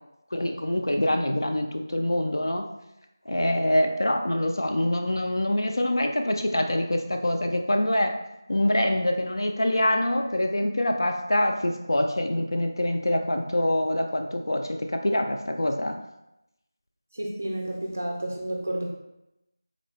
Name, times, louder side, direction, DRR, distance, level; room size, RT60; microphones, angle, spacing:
voice 1, 0.3-2.7 3.3-8.2 8.5-16.0, left 1 dB, 75° left, 4 dB, 0.3 m, -25 dB
voice 2, 17.1-18.9, right 1 dB, 30° right, 1 dB, 0.4 m, -31 dB
3.6 x 2.1 x 3.4 m, 0.90 s
figure-of-eight pair, 180°, 2 cm